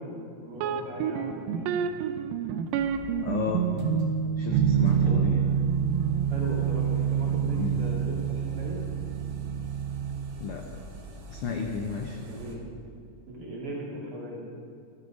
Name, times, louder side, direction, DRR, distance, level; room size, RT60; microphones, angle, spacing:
voice 1, 0.0-1.7 4.8-5.3 6.3-8.8 12.2-12.6 13.3-14.4, equal, 45° right, -3 dB, 3.1 m, -38 dB
sound 1, 0.6-10.3, right 8 dB, 90° right, 2.4 m, -27 dB
sound 2, 2.6-12.6, right 1 dB, 60° right, 2.7 m, -45 dB
voice 2, 3.2-3.7 4.4-5.5 7.5-7.9 10.4-10.7 11.3-12.2, left 6 dB, 90° left, 3 dB, 1.2 m, -33 dB
14.5 x 13.0 x 5.0 m, 2.4 s
omnidirectional pair, 3.9 m